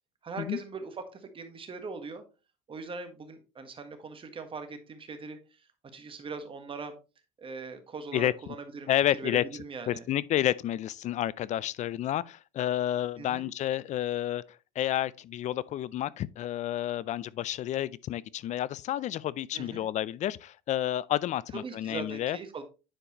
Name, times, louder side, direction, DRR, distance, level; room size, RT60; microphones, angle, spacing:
voice 1, 0.2-2.2 2.7-5.4 5.9-6.9 7.4-10.0 13.2-13.5 19.5-19.9 21.6-22.6, right 4 dB, 30° right, 1.5 m, -41 dB
voice 2, 8.9-9.4 9.9-14.4 14.8-22.4, left 12 dB, 40° left, 0.4 m, -30 dB
10.0 x 4.6 x 3.0 m
supercardioid pair, 100°, 18 cm